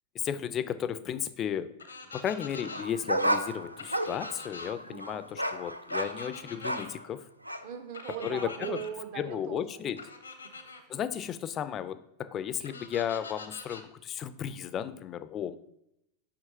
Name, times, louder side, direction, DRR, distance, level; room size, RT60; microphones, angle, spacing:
voice 1, 0.1-1.7 2.1-7.3 8.2-8.8 9.2-10.0 10.9-15.6, left 9 dB, 30° left, 14 dB, 0.4 m, -34 dB
sound 1, 1.8-2.8 3.8-4.7 5.9-6.9 7.9-8.9 10.0-10.8 12.6-13.8, left 4 dB, 75° left, 0.7 m, -44 dB
sound 2, 2.6-7.0 7.4-7.6, right 1 dB, 90° right, 0.3 m, -32 dB
voice 2, 4.8-5.2 7.6-9.8 10.4-11.0, right 9 dB, 50° right, 7 dB, 0.8 m, -40 dB
7.7 x 5.8 x 2.8 m, 0.81 s
figure-of-eight pair, 90°, 0 cm